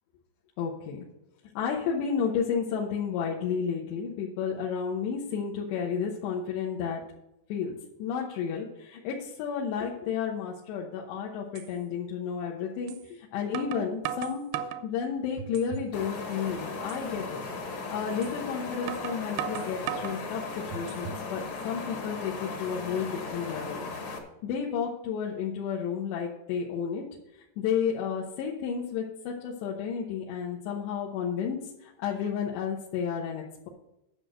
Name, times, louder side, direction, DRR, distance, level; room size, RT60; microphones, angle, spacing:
voice 1, 0.6-1.1 1.5-7.0 7.5-7.7 8.0-14.4 14.8-17.4 17.9-20.4 20.7-23.9 24.4-27.0 27.6-33.7, left 7 dB, 90° left, -3 dB, 3.3 m, -32 dB
sound 1, 11.0-11.1 11.6-11.7 12.9-13.0 13.5-14.9 15.4-15.9 16.3-16.4 16.9-17.1 18.2-18.4 18.9-20.2 20.7-21.3, right 10 dB, 80° right, 2.5 m, -36 dB
sound 2, 15.9-24.2, left 4 dB, 55° left, 1.5 m, -37 dB
10.5 x 6.4 x 6.6 m, 0.86 s
omnidirectional pair, 4.9 m